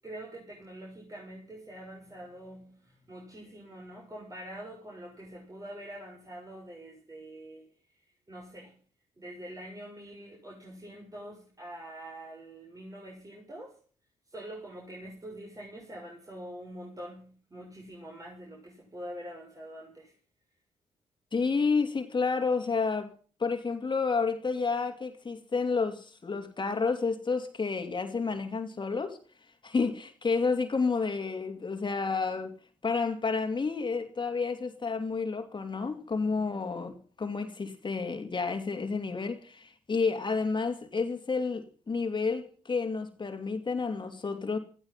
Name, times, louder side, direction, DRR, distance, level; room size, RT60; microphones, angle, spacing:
voice 1, 0.0-7.6 8.3-8.7 9.2-13.7 14.3-20.1, right 1 dB, 25° right, 7.0 m, -45 dB
voice 2, 21.3-23.1 23.4-29.2 29.6-32.5 32.8-44.6, left 4 dB, 35° left, 2.7 m, -30 dB
15.5 x 15.5 x 5.8 m
supercardioid pair, 55°, 13 cm